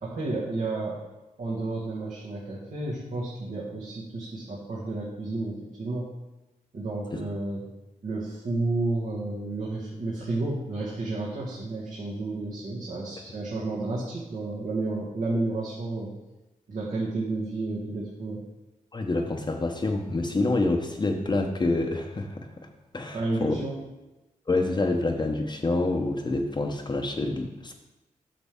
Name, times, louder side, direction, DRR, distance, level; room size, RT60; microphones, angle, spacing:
voice 1, 0.0-1.0 1.4-6.1 6.7-7.6 8.0-16.1 16.7-18.4 23.1-23.8, right 2 dB, 70° right, -6 dB, 1.6 m, -31 dB
voice 2, 18.9-23.6 24.5-27.7, left 2 dB, 30° left, 3 dB, 0.8 m, -27 dB
8.4 x 6.0 x 3.6 m, 1.0 s
cardioid pair, 75°, 14 cm